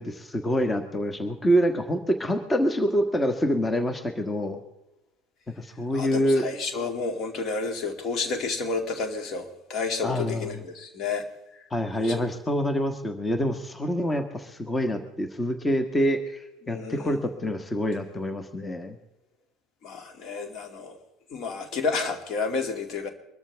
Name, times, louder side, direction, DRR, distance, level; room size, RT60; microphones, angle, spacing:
voice 1, 0.0-4.6 5.6-6.5 10.0-10.6 11.7-19.0, equal, 20° left, 7 dB, 1.6 m, -26 dB
voice 2, 5.9-11.2 12.0-12.2 16.6-17.2 19.8-21.0 21.3-23.1, left 4 dB, 55° left, 6 dB, 2.5 m, -30 dB
23.5 x 13.5 x 3.5 m, 0.90 s
hypercardioid pair, 70°, 0 cm